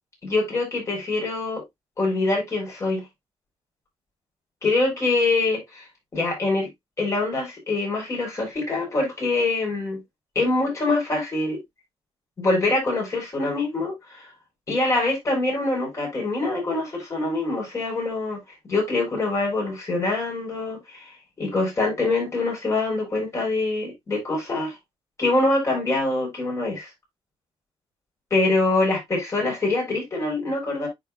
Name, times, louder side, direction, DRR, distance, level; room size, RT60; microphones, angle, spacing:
voice 1, 0.2-1.6 2.0-3.0 4.6-5.9 6.1-6.7 7.0-10.0 10.3-11.6 12.4-14.3 14.7-18.4 18.7-21.1 21.4-24.8 25.2-26.9 28.3-30.9, left 2 dB, 30° left, 5.1 m, -24 dB
10.5 x 4.3 x 2.5 m
wide cardioid pair, 155°, 10 cm